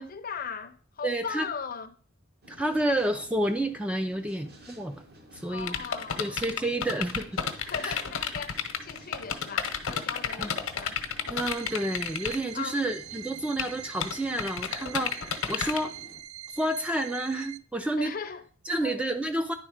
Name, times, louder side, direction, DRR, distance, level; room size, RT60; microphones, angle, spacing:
voice 1, 0.0-1.9 5.5-6.4 7.6-11.0 12.5-12.8 18.0-19.1, left 6 dB, 45° left, 0.6 m, -38 dB
voice 2, 1.0-1.5 2.5-5.0 5.3-5.8 6.2-7.4 7.8-8.0 10.4-10.5 11.3-15.9 16.6-18.1 18.7-19.5, right 1 dB, 5° right, 0.4 m, -30 dB
sound 1, 2.4-16.2, equal, 50° right, 1.2 m, -52 dB
sound 2, 5.6-12.4 13.6-13.7 14.0-15.8, left 7 dB, 80° left, 0.8 m, -30 dB
sound 3, 11.3-17.6, right 11 dB, 90° right, 0.4 m, -43 dB
10.0 x 3.6 x 4.9 m
head